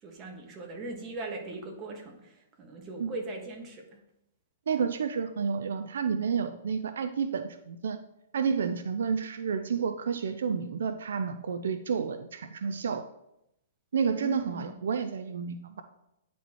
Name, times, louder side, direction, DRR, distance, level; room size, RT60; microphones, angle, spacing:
voice 1, 0.0-4.0 14.2-14.7, right 2 dB, 25° right, 1 dB, 1.6 m, -40 dB
voice 2, 4.7-8.0 8.3-13.1 13.9-15.8, right 6 dB, 80° right, 9 dB, 0.4 m, -30 dB
9.9 x 4.2 x 3.0 m, 0.82 s
hypercardioid pair, 140°, 0 cm